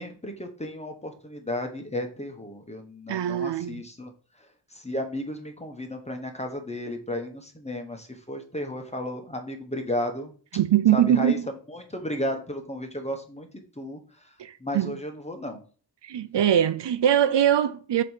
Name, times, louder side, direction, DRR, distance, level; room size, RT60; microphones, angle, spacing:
voice 1, 0.0-4.1 4.4-10.3 10.9-13.5 13.7-14.3 14.6-15.6, left 1 dB, 15° left, 1.2 m, -34 dB
voice 2, 3.1-3.8 10.6-11.4 14.4-14.9 16.0-18.0, right 10 dB, 75° right, 0.6 m, -22 dB
7.6 x 3.1 x 5.6 m
wide cardioid pair, 115°, 42 cm